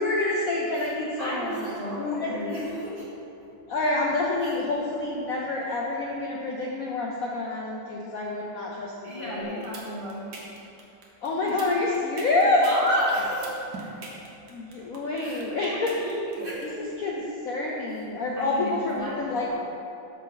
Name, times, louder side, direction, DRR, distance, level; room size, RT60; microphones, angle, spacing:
voice 1, 0.0-2.4 3.7-9.6 11.2-12.7 14.5-16.0 16.6-19.6, left 2 dB, 80° left, -2 dB, 0.7 m, -28 dB
voice 2, 1.2-3.1 4.4-4.5 9.0-10.3 11.4-11.6 12.4-14.2 15.2-16.7 18.4-19.6, equal, 25° right, -8 dB, 2.0 m, -33 dB
sound 1, 9.4-16.6, right 3 dB, 55° right, 1.5 m, -42 dB
12.5 x 4.5 x 4.0 m, 2.9 s
omnidirectional pair, 2.4 m